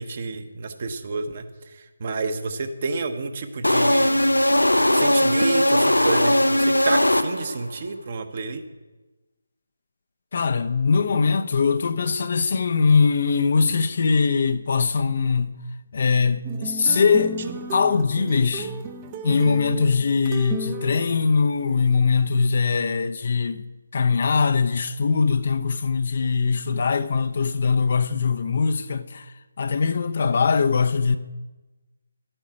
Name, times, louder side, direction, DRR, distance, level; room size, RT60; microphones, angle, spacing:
voice 1, 0.0-4.3 4.9-8.6, right 4 dB, 40° right, 1.1 m, -29 dB
sound 1, 3.6-7.7, left 1 dB, 80° left, 0.7 m, -19 dB
voice 2, 10.3-15.5 15.9-17.4 17.7-18.7 19.2-31.2, left 5 dB, 45° left, 0.7 m, -21 dB
sound 2, 16.4-22.0, right 3 dB, 20° right, 0.7 m, -34 dB
12.5 x 8.8 x 6.0 m
figure-of-eight pair, 150°, 0 cm